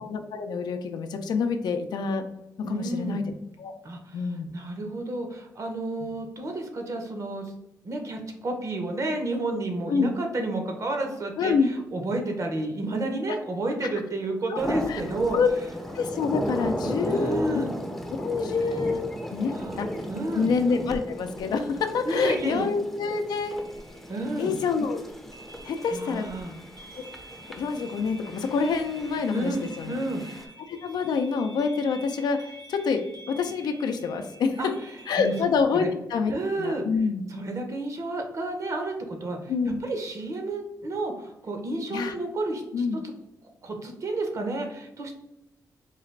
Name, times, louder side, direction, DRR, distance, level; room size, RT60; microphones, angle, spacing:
voice 1, 0.0-2.2 2.6-3.2 3.6-3.7 4.1-4.5 6.0-6.2 9.9-10.1 11.4-11.7 14.5-14.6 14.9-15.0 15.3-15.5 15.9-17.7 18.2-19.0 19.3-20.1 20.3-23.6 24.4-25.0 25.6-26.3 26.9-27.0 27.5-29.9 30.7-33.0 33.3-34.6 35.1-37.2 39.5-39.8 41.9-42.1 42.7-43.0, left 5 dB, 80° left, 6 dB, 0.5 m, -27 dB
voice 2, 2.7-3.2 3.8-4.2 4.5-7.5 7.8-15.4 17.1-17.7 19.5-19.8 20.1-20.5 22.0-22.7 24.1-24.6 25.9-26.5 29.3-30.5 34.6-34.7 35.2-35.3 35.7-35.9 36.3-36.9 37.3-39.5 39.8-42.8 43.6-45.1, right 2 dB, 50° right, 3 dB, 0.8 m, -31 dB
sound 1, 14.6-30.5, equal, ahead, 0.5 m, -36 dB
sound 2, 23.4-35.4, right 1 dB, 65° right, 1.3 m, -49 dB
3.9 x 2.4 x 3.2 m, 0.92 s
cardioid pair, 100°, 7 cm